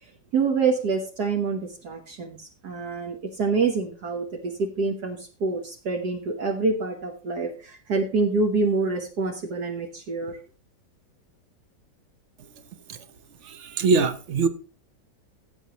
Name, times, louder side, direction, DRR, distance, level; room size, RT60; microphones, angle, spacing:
voice 1, 0.3-10.4, right 4 dB, 65° right, 1.7 m, -26 dB
voice 2, 13.6-14.5, right 4 dB, 50° right, 1.1 m, -22 dB
16.0 x 8.1 x 3.0 m
omnidirectional pair, 1.9 m